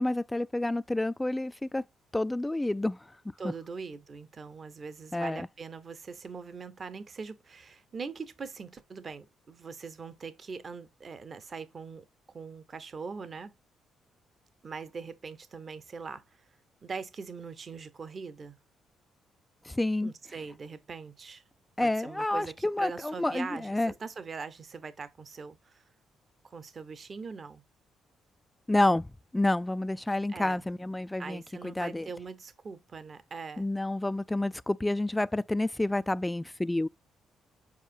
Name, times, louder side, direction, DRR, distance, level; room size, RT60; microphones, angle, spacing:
voice 1, 0.0-1.8 2.1-3.0 5.1-5.4 19.7-20.1 21.8-23.9 28.7-29.1 29.3-32.1 33.6-36.9, left 1 dB, 10° left, 0.3 m, -29 dB
voice 2, 3.4-12.1 12.3-13.5 14.6-16.5 16.8-18.5 20.0-21.4 21.8-25.8 26.4-27.6 30.3-30.6 31.2-33.7, right 5 dB, 40° right, 0.9 m, -42 dB
7.3 x 4.9 x 2.7 m
cardioid pair, 90°, 0 cm